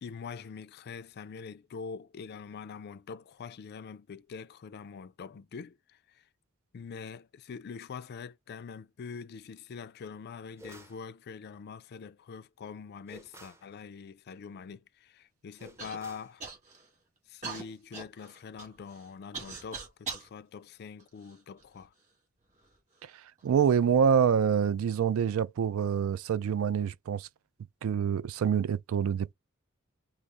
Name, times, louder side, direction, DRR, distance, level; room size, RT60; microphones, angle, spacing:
voice 1, 0.0-6.2 6.7-16.4 17.3-21.9, left 5 dB, 50° left, 0.3 m, -44 dB
sound 1, 10.6-11.0 13.1-13.7 15.6-16.4, right 1 dB, 10° right, 0.6 m, -51 dB
Human voice / Cough, 15.8-16.0 16.4-16.9 17.4-20.3 21.0-21.8 22.6-22.7 23.4-23.7, right 4 dB, 35° right, 1.9 m, -42 dB
voice 2, 23.4-27.3 27.8-29.3, right 7 dB, 70° right, 0.3 m, -26 dB
4.7 x 2.0 x 4.0 m
head